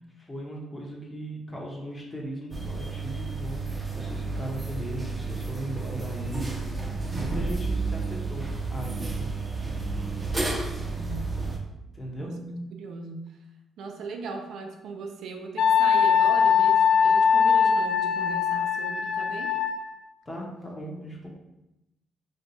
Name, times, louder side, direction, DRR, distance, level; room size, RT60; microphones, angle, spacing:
voice 1, 0.2-3.6 4.0-9.3 11.9-12.3 20.3-21.3, equal, 20° left, -1 dB, 0.8 m, -38 dB
sound 1, 2.5-11.6, right 3 dB, 15° right, 0.6 m, -31 dB
voice 2, 7.1-7.5 10.9-11.4 12.2-13.4 13.8-19.6, right 3 dB, 75° right, 3 dB, 0.4 m, -38 dB
Wind instrument woodwind instrument, 15.6-19.8, left 7 dB, 75° left, 0.4 m, -21 dB
2.7 x 2.2 x 3.9 m, 0.92 s
cardioid pair, 90°, 0 cm